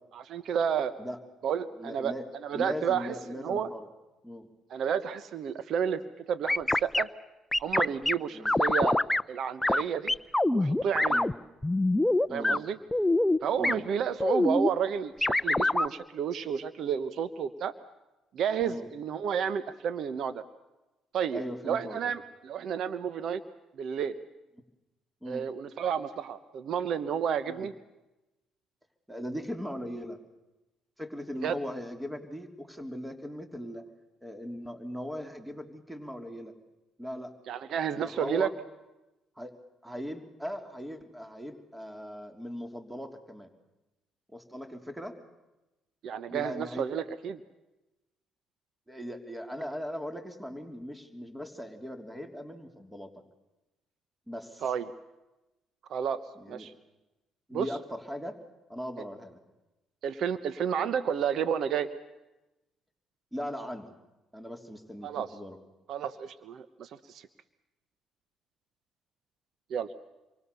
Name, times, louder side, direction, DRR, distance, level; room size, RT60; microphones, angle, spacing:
voice 1, 0.3-0.9 1.4-2.1 2.4-3.1 3.4-3.7 4.7-7.1 7.6-9.0 9.3-10.1 10.5-11.3 12.3-12.8 13.4-17.7 18.3-20.4 21.1-23.4 23.7-24.2 25.3-27.7 31.3-31.6 37.5-38.5 46.0-47.4 54.6-54.8 55.9-56.2 56.5-56.7 57.5-57.7 60.0-61.9 65.0-65.3 65.9-67.3 69.7-69.9, right 8 dB, 65° right, 14 dB, 1.1 m, -31 dB
voice 2, 1.8-2.2 2.5-3.9 4.2-4.5 8.3-8.5 11.1-11.3 12.3-12.6 13.6-13.8 18.6-18.9 21.3-22.1 25.2-25.5 27.5-27.6 29.1-30.2 31.0-33.9 34.2-36.5 37.0-37.3 38.0-38.5 39.4-39.5 39.8-43.5 44.3-45.2 46.3-46.9 48.9-53.1 54.3-54.6 56.4-56.7 57.5-58.4 58.7-59.4 63.3-63.9 64.3-65.6, equal, 10° right, 6 dB, 3.3 m, -39 dB
sound 1, 6.5-7.0 7.5-8.1 8.4-9.2 9.6-9.8 10.1-11.3 11.6-12.6 12.9-13.4 13.6-13.7 14.2-14.7 15.2-15.9, left 2 dB, 10° left, 0.8 m, -24 dB
29.0 x 24.0 x 7.0 m, 1.0 s
supercardioid pair, 60°, 0 cm